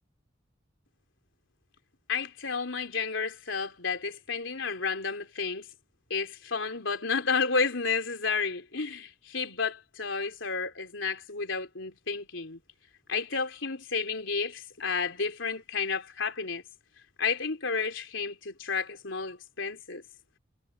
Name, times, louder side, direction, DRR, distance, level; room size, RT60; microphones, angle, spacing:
voice 1, 2.1-5.7 6.1-12.6 13.1-16.6 17.2-20.0, left 5 dB, 75° left, 3.6 m, -31 dB
head